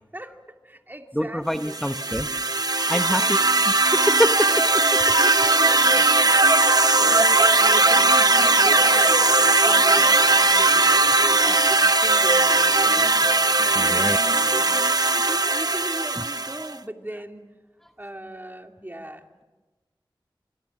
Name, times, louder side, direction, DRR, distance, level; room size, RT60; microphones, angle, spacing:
voice 1, 0.6-1.8 2.6-3.6 5.2-6.7 6.9-17.5 18.0-19.4, right 1 dB, 20° right, 4 dB, 2.8 m, -38 dB
voice 2, 1.1-2.4 2.9-3.4 3.7-5.1 13.7-14.2 14.7-14.8 16.2-16.3, equal, 5° left, 7 dB, 0.9 m, -26 dB
sound 1, 1.6-16.7, right 3 dB, 45° right, 0.9 m, -19 dB
sound 2, 4.1-15.8, right 2 dB, 75° right, 6.8 m, -40 dB
29.5 x 25.5 x 7.4 m, 1.2 s
wide cardioid pair, 50°, 9 cm